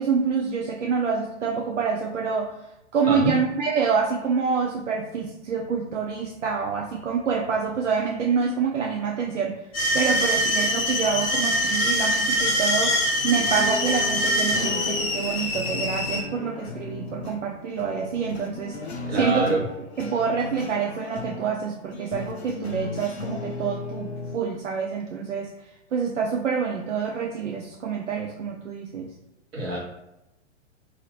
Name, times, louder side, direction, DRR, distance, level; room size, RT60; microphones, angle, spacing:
voice 1, 0.0-2.5 2.9-9.6 9.9-13.0 13.2-19.4 20.0-25.5 25.9-29.1, right 6 dB, 80° right, 0 dB, 0.5 m, -27 dB
sound 1, 9.7-16.2, equal, 15° left, 0.4 m, -24 dB
sound 2, 13.3-24.4, left 3 dB, 60° left, 0.6 m, -36 dB
voice 2, 19.1-19.6 29.5-29.8, right 2 dB, 55° right, -3 dB, 1.2 m, -25 dB
2.7 x 2.6 x 3.3 m, 0.90 s
figure-of-eight pair, 110°, 36 cm